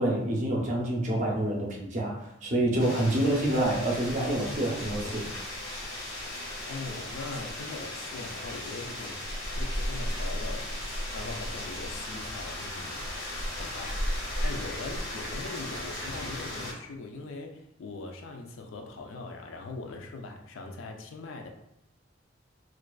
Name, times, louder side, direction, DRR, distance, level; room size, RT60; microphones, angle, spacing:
voice 1, 0.0-5.2, right 1 dB, 40° right, -1 dB, 0.5 m, -27 dB
sound 1, 2.8-16.7, left 1 dB, 60° left, 0.8 m, -35 dB
voice 2, 6.7-10.7 11.1-13.1 13.6-21.5, left 3 dB, 80° left, 3 dB, 0.4 m, -41 dB
2.4 x 2.2 x 2.3 m, 0.79 s
head